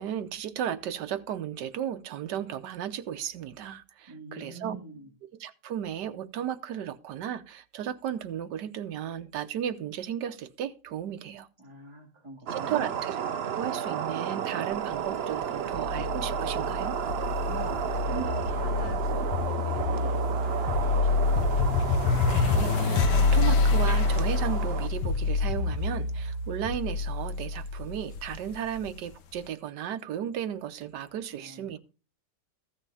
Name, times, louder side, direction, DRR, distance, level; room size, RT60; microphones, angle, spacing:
voice 1, 0.0-4.8 5.4-11.5 12.5-17.0 22.3-31.8, right 10 dB, 85° right, 1.5 m, -35 dB
voice 2, 4.1-5.1 11.6-13.0 17.4-21.4 31.4-31.8, right 2 dB, 15° right, 2.3 m, -43 dB
sound 1, 12.5-24.9, right 8 dB, 65° right, 0.6 m, -33 dB
sound 2, 15.7-28.9, left 4 dB, 90° left, 1.5 m, -27 dB
15.0 x 5.8 x 5.5 m
omnidirectional pair, 1.8 m